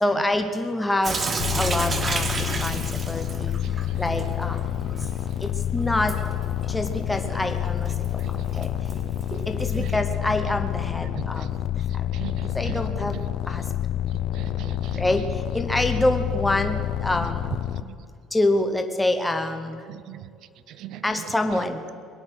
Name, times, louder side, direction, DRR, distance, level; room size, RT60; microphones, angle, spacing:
voice 1, 0.0-1.2 1.6-3.5 4.0-4.6 5.4-6.1 6.7-7.9 8.6-8.7 9.6-11.5 12.5-13.2 13.5-13.6 15.0-15.2 15.5-16.8 17.0-17.4 18.3-19.8 21.0-21.8, left 1 dB, 5° left, 6 dB, 0.8 m, -26 dB
Sink (filling or washing) / Drip, 1.0-9.9, right 3 dB, 20° right, 1.0 m, -33 dB
sound 1, 1.4-17.8, left 11 dB, 50° left, 0.5 m, -28 dB
voice 2, 12.2-12.7 14.4-15.0 19.9-20.2 20.8-21.0, right 13 dB, 55° right, 15 dB, 0.6 m, -38 dB
21.0 x 9.7 x 6.3 m, 2.3 s
cardioid pair, 175°, 0 cm